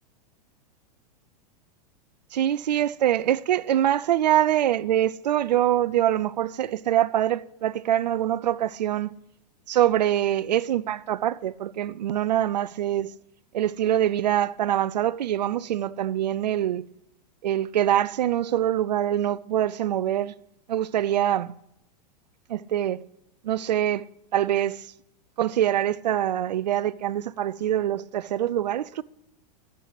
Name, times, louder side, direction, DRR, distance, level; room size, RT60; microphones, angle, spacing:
voice 1, 2.3-9.1 9.7-13.1 13.5-16.8 17.4-20.3 20.7-21.5 22.5-23.0 23.4-24.1 24.3-24.9 25.4-29.0, right 11 dB, 80° right, 0.6 m, -24 dB
11.5 x 7.5 x 8.2 m
hypercardioid pair, 115°, 21 cm